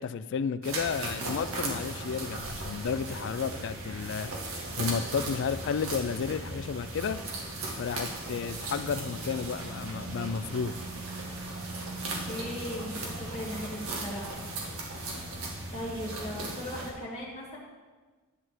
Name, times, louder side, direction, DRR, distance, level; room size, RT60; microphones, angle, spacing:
voice 1, 0.0-4.3 4.8-7.2 7.7-10.7, left 6 dB, 55° left, 15 dB, 0.3 m, -32 dB
sound 1, 0.6-16.9, right 2 dB, 85° right, 1.9 m, -37 dB
voice 2, 12.3-14.4 15.7-17.6, left 1 dB, 30° left, -6 dB, 2.0 m, -38 dB
11.0 x 4.1 x 7.7 m, 1.3 s
head